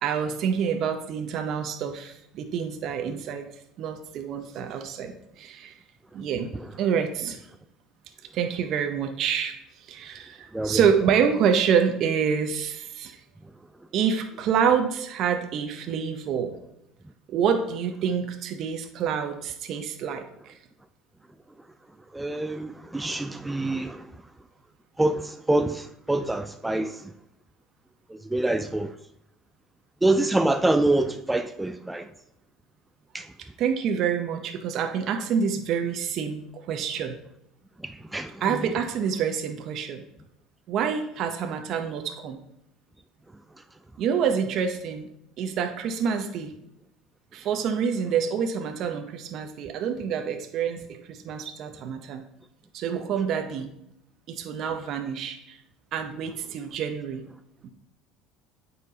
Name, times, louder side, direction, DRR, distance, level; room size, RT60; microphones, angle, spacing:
voice 1, 0.0-3.5 3.8-5.7 6.1-7.4 8.3-9.5 9.9-13.2 13.9-16.5 17.3-20.5 33.6-37.2 38.4-40.1 40.7-42.4 44.0-45.1 45.4-46.5 47.3-52.2 52.7-53.7 54.3-55.6 55.9-57.2 57.6-57.7, right 7 dB, 55° right, 0.7 m, -27 dB
voice 2, 22.1-24.0 25.0-27.1 28.2-28.9 30.0-32.0 33.1-33.2 38.1-38.3, right 2 dB, 10° right, 0.3 m, -25 dB
8.7 x 4.2 x 2.8 m
supercardioid pair, 105°, 0 cm